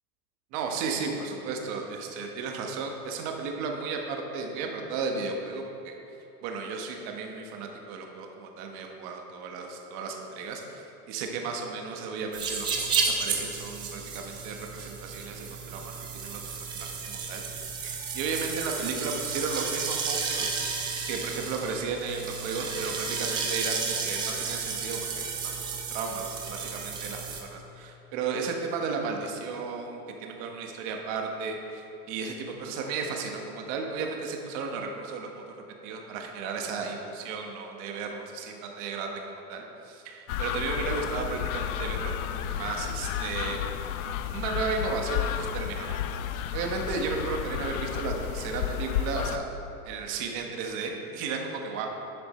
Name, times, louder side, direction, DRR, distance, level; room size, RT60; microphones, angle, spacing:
voice 1, 0.5-5.9 6.4-20.6 21.1-35.6 35.8-43.8 44.3-46.0 46.5-49.5 49.8-51.9, right 4 dB, 40° right, 2 dB, 1.3 m, -34 dB
sound 1, 12.3-27.4, right 5 dB, 10° right, 0.3 m, -32 dB
sound 2, 40.3-49.4, left 10 dB, 70° left, 0.6 m, -32 dB
11.0 x 6.7 x 4.3 m, 2.9 s
supercardioid pair, 150°, 45 cm